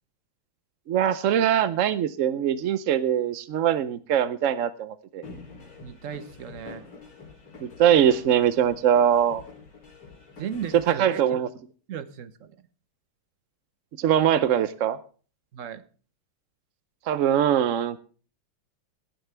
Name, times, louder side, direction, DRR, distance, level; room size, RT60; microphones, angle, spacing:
voice 1, 0.9-5.2 7.6-9.4 10.9-11.5 14.0-15.0 17.1-18.0, right 9 dB, 85° right, 14 dB, 0.6 m, -22 dB
sound 1, 5.2-10.9, left 4 dB, 85° left, 4.1 m, -45 dB
voice 2, 5.8-6.8 10.4-11.1 11.9-12.5 15.5-15.8, right 8 dB, 55° right, 13 dB, 0.9 m, -36 dB
18.0 x 10.5 x 3.4 m, 0.39 s
omnidirectional pair, 2.2 m